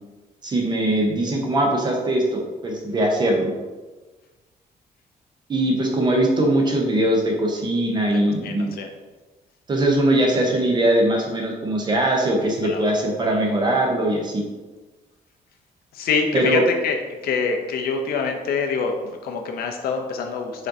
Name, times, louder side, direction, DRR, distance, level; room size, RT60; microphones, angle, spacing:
voice 1, 0.4-3.5 5.5-8.7 9.7-14.4 16.3-16.6, right 1 dB, 30° right, 0 dB, 0.7 m, -21 dB
voice 2, 8.4-8.9 12.4-12.9 13.3-13.4 15.9-17.0 17.2-20.7, left 5 dB, 75° left, 4 dB, 0.6 m, -25 dB
5.1 x 3.8 x 2.7 m, 1.2 s
cardioid pair, 175°, 16 cm